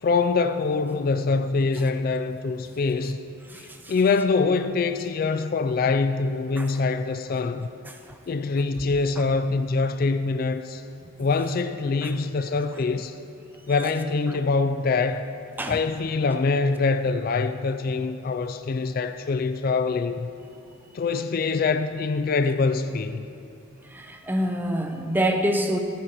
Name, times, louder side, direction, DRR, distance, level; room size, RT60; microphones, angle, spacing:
voice 1, 0.0-3.2 3.6-7.7 8.3-10.8 11.2-13.2 13.7-15.3 15.7-20.3 20.9-23.3, left 4 dB, 45° left, 0.3 m, -24 dB
voice 2, 3.5-3.9 6.6-6.7 7.9-8.0 12.0-12.1 15.6-15.8 23.9-25.8, right 1 dB, 10° right, 0.5 m, -26 dB
15.5 x 10.5 x 3.0 m
head